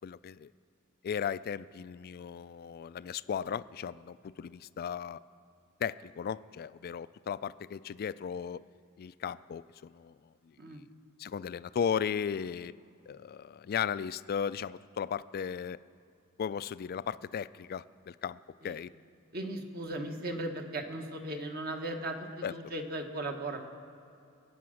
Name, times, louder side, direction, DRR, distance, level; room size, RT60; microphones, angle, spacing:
voice 1, 0.0-0.5 1.0-5.2 5.8-8.6 9.0-10.2 10.4-10.8 11.2-12.7 13.1-15.8 16.4-18.9 22.4-22.6, left 7 dB, 45° left, 16 dB, 0.3 m, -36 dB
voice 2, 19.3-23.6, right 1 dB, 45° right, 4 dB, 1.3 m, -37 dB
22.5 x 8.7 x 6.3 m, 2.6 s
head